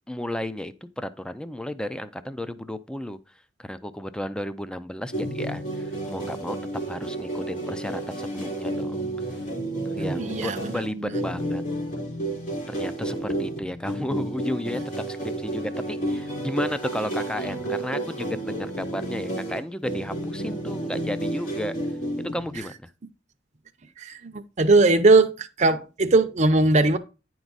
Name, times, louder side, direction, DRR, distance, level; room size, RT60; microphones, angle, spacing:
voice 1, 0.1-3.2 3.7-6.6 6.9-9.0 9.9-11.6 12.7-21.8 22.2-22.9, left 1 dB, 5° left, 0.4 m, -33 dB
sound 1, 5.1-22.6, right 1 dB, 50° left, 3.1 m, -31 dB
voice 2, 10.0-11.2 24.0-27.0, right 2 dB, 40° right, 0.7 m, -20 dB
9.9 x 4.7 x 4.0 m
head